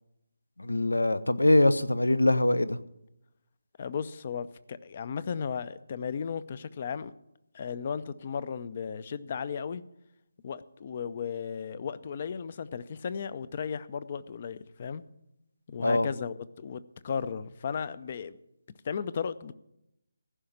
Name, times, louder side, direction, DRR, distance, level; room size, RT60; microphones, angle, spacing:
voice 1, 0.6-2.8 15.8-16.1, left 1 dB, 75° left, 0.7 m, -23 dB
voice 2, 3.8-7.1 7.5-9.8 10.4-15.0 15.7-18.4 18.8-19.5, left 6 dB, 35° left, 0.5 m, -35 dB
14.5 x 5.7 x 9.9 m
figure-of-eight pair, 150°, 0 cm